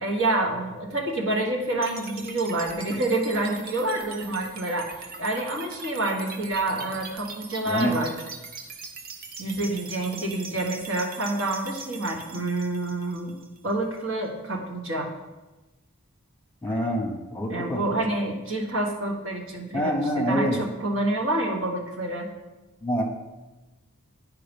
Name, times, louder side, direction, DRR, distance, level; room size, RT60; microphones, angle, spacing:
voice 1, 0.0-8.1 9.4-13.4 13.6-15.1 17.5-22.3, right 2 dB, 60° right, 1 dB, 1.4 m, -28 dB
sound 1, 1.8-13.8, right 4 dB, 40° right, 0.6 m, -41 dB
voice 2, 7.6-8.0 16.6-18.2 19.7-20.6 22.8-23.0, equal, 5° left, 1 dB, 1.1 m, -26 dB
9.3 x 4.8 x 5.3 m, 1.1 s
head